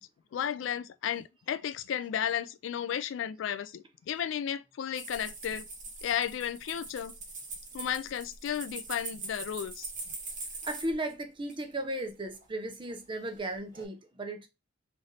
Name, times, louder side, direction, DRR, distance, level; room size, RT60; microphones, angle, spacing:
voice 1, 0.3-5.7 6.0-7.1 7.7-9.9, left 9 dB, 65° left, 0.3 m, -33 dB
sound 1, 4.9-11.1 11.5-11.6 12.4-12.9 13.3-13.8, right 3 dB, 40° right, 1.1 m, -42 dB
voice 2, 10.6-14.5, right 1 dB, 25° right, 0.7 m, -35 dB
3.3 x 2.6 x 3.9 m
head